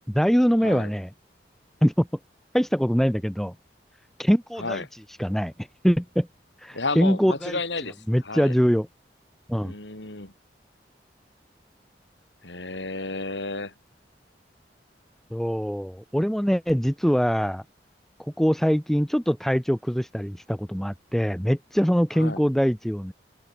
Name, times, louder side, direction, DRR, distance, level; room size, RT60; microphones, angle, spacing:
voice 1, 0.1-1.1 1.8-2.1 2.5-3.5 4.2-4.8 5.2-5.5 5.8-6.3 6.6-7.6 8.1-8.9 9.5-9.7 15.3-17.6 18.4-23.1, equal, ahead, 1.0 m, -23 dB
voice 2, 0.6-0.9 4.6-4.9 6.7-8.0 8.2-8.5 9.6-10.3 12.4-13.7 22.2-22.4, left 3 dB, 90° left, 5.3 m, -32 dB
head